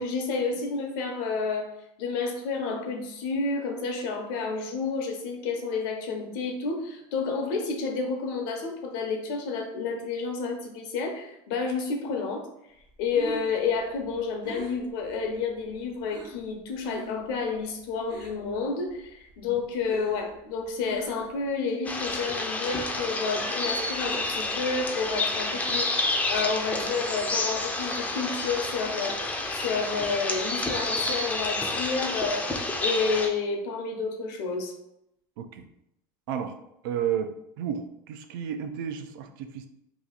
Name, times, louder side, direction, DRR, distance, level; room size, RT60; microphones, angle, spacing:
voice 1, 0.0-1.7 2.0-12.5 13.0-32.5 32.8-34.7, left 4 dB, 70° left, 3 dB, 0.8 m, -30 dB
Breathing, 12.9-16.4 16.8-17.3 17.5-18.6 18.9-21.5, right 2 dB, 40° right, 0.8 m, -42 dB
sound 1, 21.8-33.3, left 2 dB, 15° left, 0.4 m, -29 dB
voice 2, 36.8-37.3 37.6-39.7, right 8 dB, 85° right, 7 dB, 0.4 m, -32 dB
2.9 x 2.4 x 3.8 m, 0.81 s
supercardioid pair, 140°, 11 cm